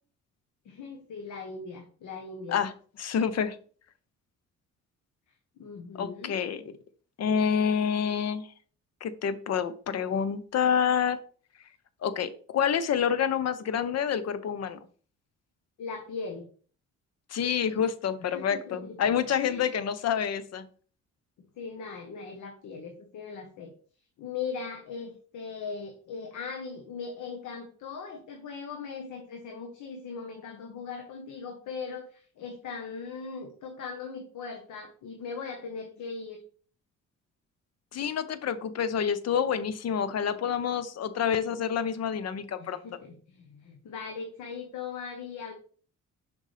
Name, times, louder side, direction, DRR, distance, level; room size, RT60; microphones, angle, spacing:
voice 1, 0.6-2.6 5.6-6.4 15.8-16.5 18.2-19.1 19.4-19.7 21.6-23.7 24.2-36.4 42.6-45.5, left 5 dB, 75° left, 3 dB, 1.2 m, -39 dB
voice 2, 3.0-3.6 5.9-6.7 7.2-8.5 9.0-11.2 12.0-14.8 17.3-20.7 37.9-42.8, left 7 dB, 55° left, 14 dB, 0.8 m, -28 dB
6.5 x 5.2 x 3.3 m, 0.43 s
cardioid pair, 90°, 30 cm